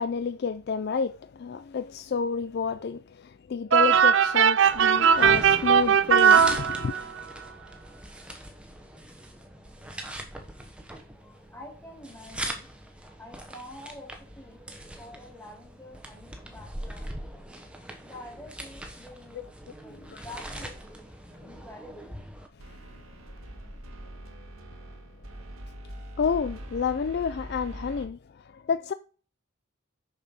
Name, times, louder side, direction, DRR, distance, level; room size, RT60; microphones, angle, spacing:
voice 1, 0.0-6.9 19.3-19.4 19.9-20.2 22.6-22.8 24.4-24.5 25.8-28.9, left 6 dB, 50° left, 0.3 m, -30 dB
sound 1, 3.7-7.2, right 7 dB, 55° right, 0.4 m, -19 dB
sound 2, 4.6-22.5, right 1 dB, 5° right, 1.1 m, -41 dB
voice 2, 11.0-12.7 13.1-14.1 14.3-14.6 15.0-17.1 18.0-19.4 19.8-22.1, left 1 dB, 10° left, 2.7 m, -47 dB
sound 3, 20.4-21.2 22.6-28.1, right 1 dB, 75° right, 1.6 m, -43 dB
6.7 x 6.3 x 5.4 m
head